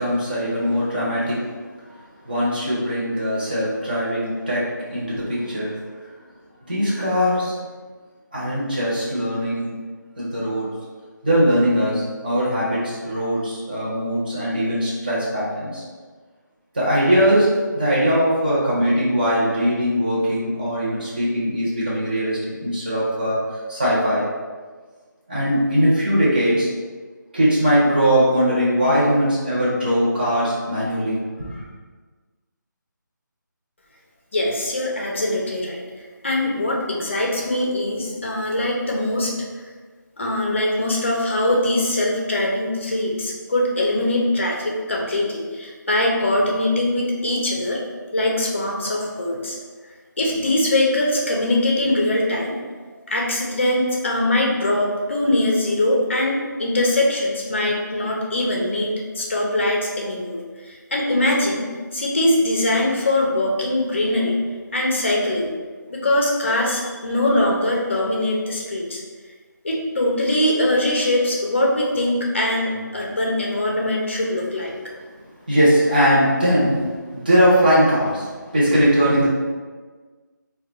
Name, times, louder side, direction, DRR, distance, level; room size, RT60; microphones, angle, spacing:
voice 1, 0.0-1.4 2.3-5.7 6.7-7.5 8.3-9.7 10.2-10.7 11.2-15.8 16.7-23.4 23.7-24.2 25.3-26.7 27.3-31.6 75.5-78.3 78.5-79.3, equal, 25° right, -7 dB, 0.8 m, -20 dB
voice 2, 34.3-35.8 36.2-39.5 40.2-47.8 48.1-49.6 50.2-52.5 53.1-64.4 64.7-65.5 65.9-69.0 69.6-74.7, left 1 dB, 35° left, -1 dB, 0.5 m, -22 dB
2.2 x 2.2 x 3.8 m, 1.4 s
figure-of-eight pair, 175°, 11 cm